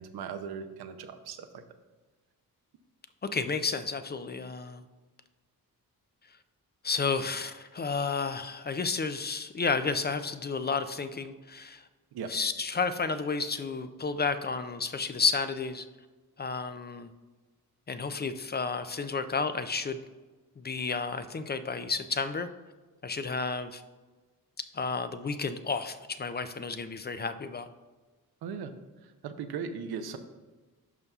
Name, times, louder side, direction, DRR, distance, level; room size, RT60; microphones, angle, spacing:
voice 1, 0.0-1.6 12.1-12.3 28.4-28.7 29.0-30.2, right 6 dB, 80° right, 8 dB, 0.7 m, -38 dB
voice 2, 3.2-4.8 6.8-11.8 12.3-15.8 16.4-17.1 17.9-20.0 20.6-22.5 23.0-23.8 24.7-27.7, left 4 dB, 30° left, 10 dB, 0.4 m, -31 dB
11.0 x 5.5 x 2.4 m, 1.3 s
cardioid pair, 80°, 37 cm